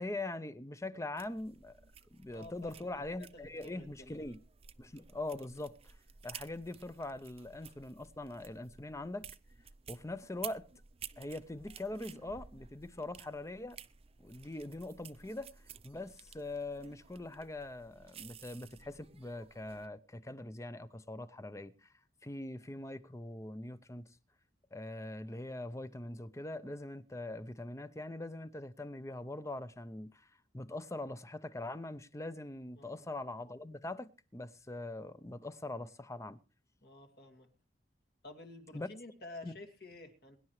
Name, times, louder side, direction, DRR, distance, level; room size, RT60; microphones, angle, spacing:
voice 1, 0.0-1.8 2.1-4.4 4.8-5.9 6.2-9.2 9.9-10.7 11.2-13.8 14.2-15.5 15.8-21.9 22.2-24.1 24.7-30.3 30.5-36.4 38.7-38.9 39.4-39.5, left 2 dB, 15° left, 0.7 m, -42 dB
sound 1, 1.2-19.9, right 8 dB, 35° right, 0.6 m, -53 dB
voice 2, 2.3-2.9 3.3-4.3 32.8-33.0 36.8-37.5 38.2-40.4, left 2 dB, 65° left, 2.4 m, -51 dB
23.0 x 11.0 x 3.2 m
head